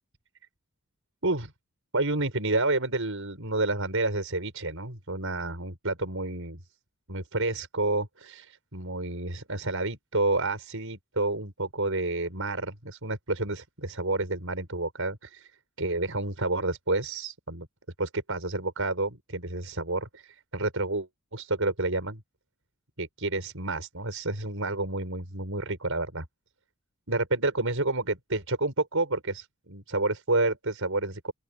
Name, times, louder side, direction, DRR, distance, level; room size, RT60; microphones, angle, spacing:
voice 1, 1.9-6.6 7.1-15.5 15.8-17.7 18.0-22.2 23.0-26.3 27.1-31.3, right 2 dB, 60° right, 7.4 m, -29 dB
open air
head